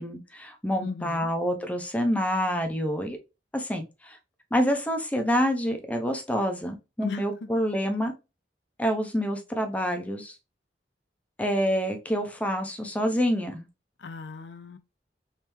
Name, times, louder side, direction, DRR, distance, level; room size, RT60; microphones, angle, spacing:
voice 1, 0.0-3.2 3.5-4.2 4.5-8.1 8.8-10.3 11.4-13.7, equal, 10° left, 0.6 m, -27 dB
voice 2, 0.8-1.3 7.0-7.5 14.0-14.8, left 4 dB, 80° left, 0.5 m, -37 dB
3.2 x 3.1 x 3.3 m
head